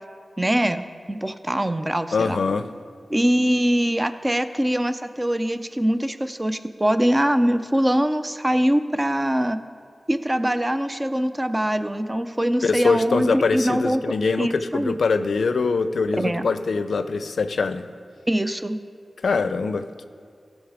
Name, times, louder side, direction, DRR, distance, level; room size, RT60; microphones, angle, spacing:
voice 1, 0.4-2.4 3.1-9.6 10.1-14.0 14.4-15.0 16.2-16.5 18.3-18.8, equal, 20° right, 10 dB, 0.6 m, -23 dB
voice 2, 2.1-2.7 12.6-17.8 19.2-20.0, left 4 dB, 85° left, 11 dB, 0.5 m, -23 dB
15.5 x 6.5 x 4.9 m, 2.2 s
wide cardioid pair, 65°, 0 cm